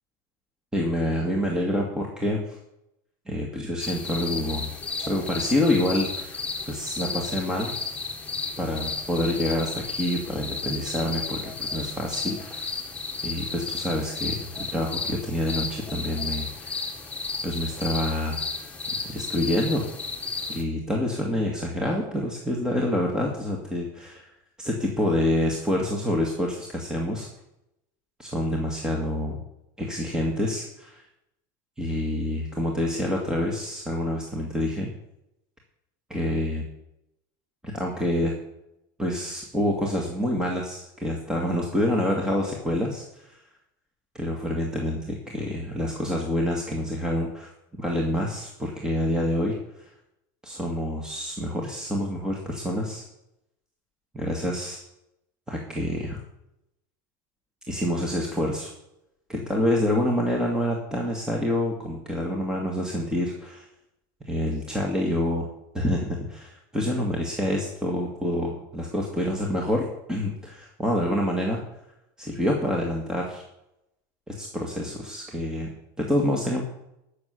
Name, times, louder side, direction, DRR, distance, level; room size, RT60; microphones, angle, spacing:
voice 1, 0.7-2.6 3.3-4.7 5.1-6.4 6.7-7.7 8.6-12.7 13.2-16.7 17.4-18.4 19.1-19.9 20.5-24.3 24.6-27.3 28.2-29.4 29.8-31.0 31.8-34.9 36.1-36.6 37.6-38.3 39.0-43.4 44.1-47.5 47.8-49.9 50.4-53.0 54.1-54.8 55.5-56.2 57.7-58.7 59.3-63.7 64.2-65.5 65.7-71.6 72.2-73.4 74.3-75.7 76.0-76.6, left 1 dB, 5° right, -1 dB, 2.0 m, -27 dB
sound 1, 3.8-20.6, left 4 dB, 15° left, 1.9 m, -33 dB
13.5 x 6.6 x 8.3 m, 0.85 s
supercardioid pair, 135°, 10 cm